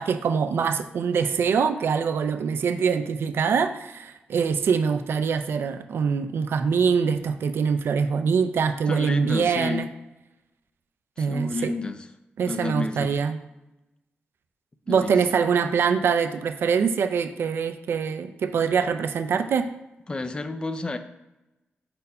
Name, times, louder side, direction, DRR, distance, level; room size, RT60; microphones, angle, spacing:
voice 1, 0.0-9.9 11.2-11.7 12.4-13.4 14.9-19.7, right 6 dB, 75° right, 8 dB, 0.5 m, -24 dB
voice 2, 8.9-9.9 11.2-12.1 12.4-13.1 14.9-15.2 20.1-21.0, left 2 dB, 25° left, 8 dB, 0.4 m, -30 dB
4.4 x 4.1 x 5.4 m, 0.95 s
wide cardioid pair, 100°, 4 cm